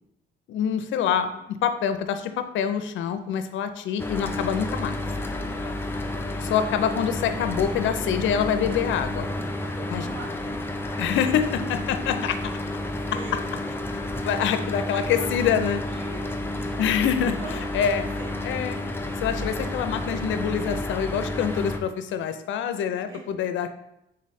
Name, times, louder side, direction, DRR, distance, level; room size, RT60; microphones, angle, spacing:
voice 1, 0.5-5.0 6.4-9.3 9.9-10.1 11.0-12.4 14.2-15.8 16.8-18.0 18.4-18.9 19.2-23.7, left 8 dB, 75° left, 9 dB, 0.5 m, -26 dB
Mechanical fan, 4.0-21.8, left 1 dB, 10° left, 0.4 m, -31 dB
voice 2, 5.3-6.5 9.2-10.6 11.4-11.5 13.1-13.5 14.7-17.7 17.9-18.6 23.1-23.3, right 4 dB, 75° right, 2 dB, 0.8 m, -42 dB
3.9 x 3.1 x 4.1 m, 0.83 s
cardioid pair, 90°, 20 cm